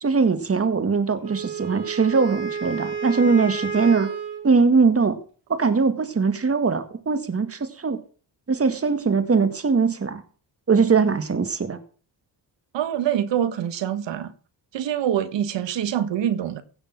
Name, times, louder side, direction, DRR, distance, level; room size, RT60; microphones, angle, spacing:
voice 1, 0.0-4.1 4.4-5.2 5.5-8.0 8.5-10.2 10.7-11.8, right 4 dB, 30° right, 2.0 m, -21 dB
Wind instrument woodwind instrument, 1.2-4.5, right 5 dB, 60° right, 5.1 m, -31 dB
voice 2, 12.7-14.3 14.7-16.6, right 10 dB, 80° right, 1.6 m, -25 dB
16.5 x 6.7 x 6.1 m
cardioid pair, 85°, 43 cm